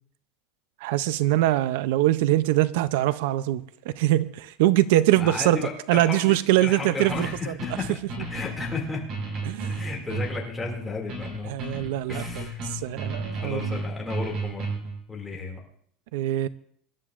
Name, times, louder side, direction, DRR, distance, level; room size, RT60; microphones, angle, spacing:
voice 1, 0.8-5.6 5.9-7.3 9.5-9.7 11.4-13.8 16.1-16.5, right 15 dB, 70° right, 15 dB, 0.5 m, -23 dB
voice 2, 5.1-8.0 8.3-9.0 9.7-11.5 12.1-12.7 13.4-14.7 15.1-15.6, left 4 dB, 5° left, -2 dB, 2.3 m, -33 dB
sound 1, 7.1-15.0, right 3 dB, 40° right, 5.1 m, -33 dB
24.5 x 12.0 x 2.5 m, 0.62 s
cardioid pair, 175°, 0 cm